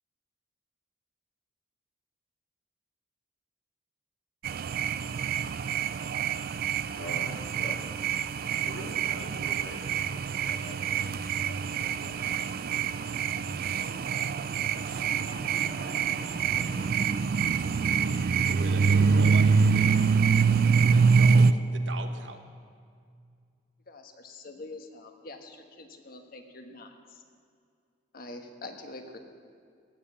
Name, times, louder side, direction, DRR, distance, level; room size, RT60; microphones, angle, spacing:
sound 1, 4.4-21.5, right 5 dB, 50° right, 0.3 m, -25 dB
voice 1, 6.9-7.8 8.6-11.0 11.5-13.1, equal, 75° left, 0 dB, 2.3 m, -45 dB
sound 2, 12.6-17.8, equal, 5° left, 1.2 m, -47 dB
voice 2, 18.4-20.0 20.8-22.4, right 3 dB, 75° right, 7 dB, 1.0 m, -40 dB
voice 3, 23.9-27.2 28.1-29.2, left 2 dB, 50° left, 5 dB, 1.3 m, -45 dB
18.0 x 7.5 x 7.0 m, 2.3 s
head